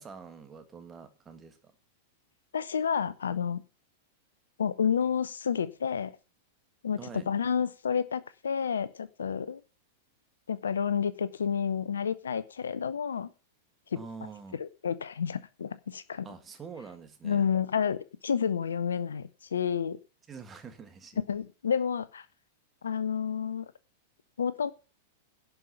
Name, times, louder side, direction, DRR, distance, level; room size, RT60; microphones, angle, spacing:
voice 1, 0.0-1.7 7.0-7.3 13.9-14.6 16.2-17.5 20.3-21.2, right 5 dB, 20° right, 7 dB, 2.0 m, -46 dB
voice 2, 2.5-3.6 4.6-6.1 6.8-9.6 10.5-13.3 13.9-14.0 14.6-16.3 17.2-20.0 21.3-22.2 22.8-23.7 24.4-24.7, left 7 dB, 70° left, 16 dB, 0.8 m, -30 dB
11.5 x 5.7 x 8.1 m, 0.34 s
figure-of-eight pair, 95°, 0 cm